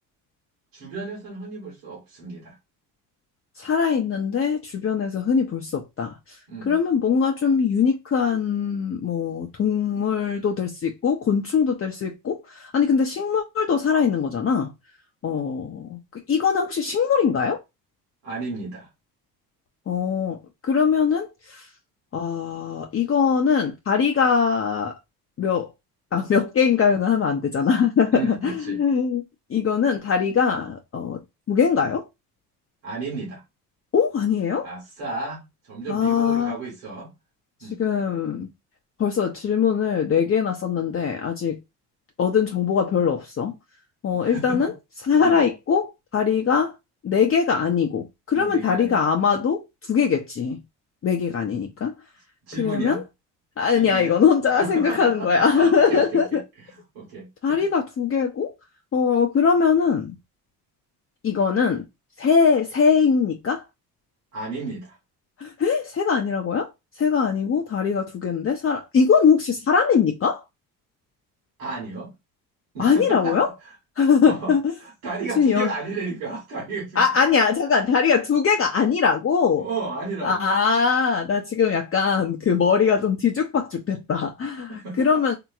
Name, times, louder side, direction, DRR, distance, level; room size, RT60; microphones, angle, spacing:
voice 1, 0.7-2.5 6.5-6.8 18.2-18.9 28.1-28.8 32.8-33.4 34.6-37.1 37.6-37.8 44.1-44.6 45.2-45.4 48.3-49.0 52.5-53.0 53.7-54.2 54.6-57.6 64.3-65.0 71.6-72.1 72.7-73.4 74.0-74.5 74.8-77.0 79.6-80.5 84.7-85.2, right 3 dB, 85° right, 1.5 m, -33 dB
voice 2, 3.6-6.1 6.7-14.7 15.2-16.0 16.3-17.6 19.9-21.7 22.1-24.9 25.4-25.7 26.1-29.2 29.5-31.2 31.5-32.0 33.9-34.7 35.9-36.5 37.8-38.5 39.0-41.6 42.2-43.5 44.0-44.7 45.0-46.7 47.0-50.6 51.0-51.9 52.6-53.0 53.6-56.4 57.4-58.5 58.9-60.2 61.2-61.8 62.2-63.6 65.4-66.7 67.0-70.4 72.8-73.5 74.0-74.6 75.4-75.7 77.0-79.7 80.2-85.4, left 6 dB, 30° left, 0.6 m, -21 dB
2.8 x 2.8 x 2.3 m
supercardioid pair, 65°, 42 cm